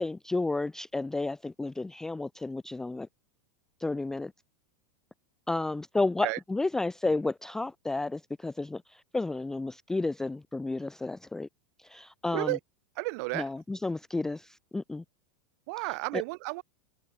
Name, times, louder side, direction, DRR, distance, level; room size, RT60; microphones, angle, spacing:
voice 1, 0.0-3.1 3.8-4.3 5.5-8.8 9.1-11.5 11.9-12.6 13.3-15.0 16.1-16.2, left 2 dB, 5° left, 0.5 m, -31 dB
voice 2, 13.0-13.5 15.7-16.6, right 27 dB, 40° right, 2.0 m, -32 dB
supercardioid pair, 180°, 14 cm